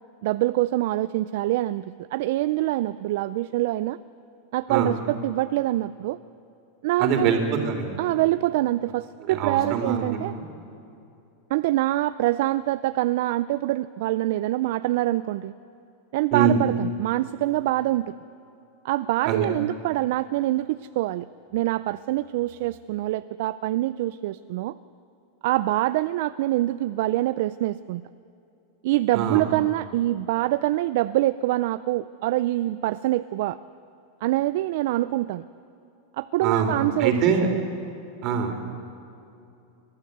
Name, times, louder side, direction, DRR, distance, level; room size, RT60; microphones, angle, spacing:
voice 1, 0.2-1.8 2.1-4.0 4.5-6.2 6.8-7.4 8.0-10.3 11.5-15.5 16.1-18.2 18.8-21.3 21.5-24.7 25.4-28.0 28.8-33.6 34.2-35.4 36.2-37.1 37.4-37.5, right 16 dB, 60° right, 13 dB, 0.4 m, -25 dB
voice 2, 7.0-7.9 9.3-10.2 16.3-16.6 19.2-19.5 29.1-29.4 36.4-37.5 38.2-38.5, right 6 dB, 40° right, 4 dB, 3.1 m, -24 dB
29.5 x 12.5 x 8.0 m, 2.7 s
supercardioid pair, 160°, 0 cm